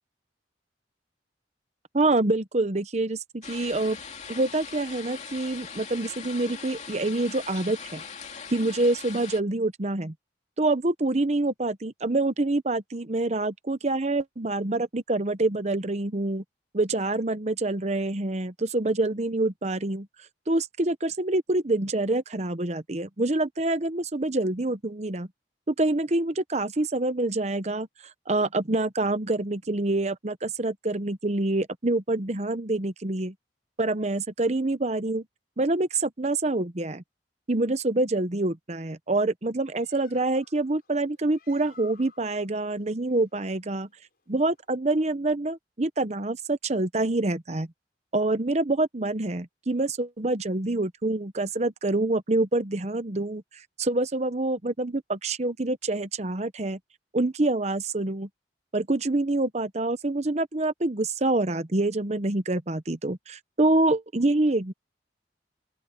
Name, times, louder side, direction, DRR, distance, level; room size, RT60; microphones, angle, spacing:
voice 1, 1.9-4.0 4.3-8.0 8.5-10.1 10.6-16.4 16.7-20.1 20.5-25.3 25.7-27.9 28.3-33.3 33.8-35.2 35.6-37.0 37.5-43.9 44.3-47.7 48.1-53.4 53.8-56.8 57.1-58.3 58.7-64.7, right 2 dB, 40° right, 0.9 m, -26 dB
sound 1, 3.4-9.4, left 6 dB, 40° left, 2.7 m, -41 dB
Bird, 39.5-44.7, left 5 dB, 55° left, 7.5 m, -57 dB
open air
head